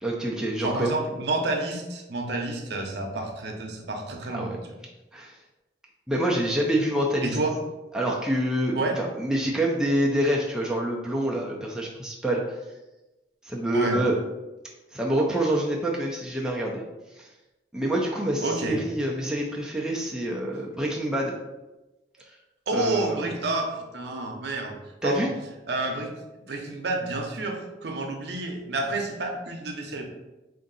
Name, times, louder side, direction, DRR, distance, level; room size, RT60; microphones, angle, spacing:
voice 1, 0.0-0.9 4.3-4.6 5.1-5.3 6.1-7.4 7.9-12.6 13.4-14.2 14.9-16.8 17.2-17.3 17.7-21.3 22.7-23.3 25.0-25.3, right 1 dB, 5° right, -3 dB, 0.4 m, -26 dB
voice 2, 0.6-4.6 7.2-7.5 8.7-9.0 13.7-14.0 18.4-18.8 22.7-24.7 25.0-25.3 25.7-26.1 26.5-30.0, right 2 dB, 60° right, 2 dB, 0.7 m, -29 dB
3.6 x 2.6 x 3.9 m, 1.0 s
head